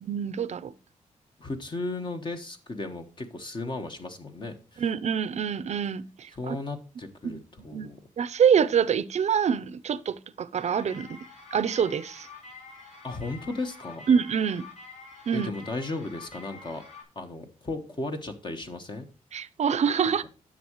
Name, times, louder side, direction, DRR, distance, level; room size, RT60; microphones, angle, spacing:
voice 1, 0.0-0.7 4.8-6.6 7.2-7.4 7.7-7.9 8.2-11.2 11.5-12.3 14.1-14.7 15.3-15.5 19.3-20.2, right 7 dB, 55° right, 0.6 m, -25 dB
voice 2, 1.4-4.8 6.3-8.0 13.0-14.0 15.3-16.8 17.1-19.1, left 2 dB, 35° left, 1.2 m, -35 dB
sound 1, 10.6-17.0, left 4 dB, 55° left, 4.3 m, -47 dB
10.5 x 7.3 x 3.1 m
wide cardioid pair, 120°, 14 cm